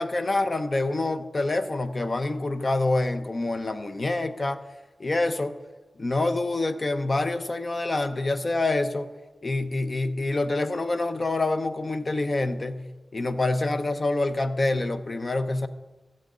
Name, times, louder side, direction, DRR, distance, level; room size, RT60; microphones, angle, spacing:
voice 1, 0.0-4.6 5.0-5.6 6.0-9.1 9.4-12.9 13.1-15.7, left 2 dB, 45° left, 10 dB, 0.8 m, -26 dB
15.5 x 7.7 x 3.9 m, 1.2 s
cardioid pair, 45°, 0 cm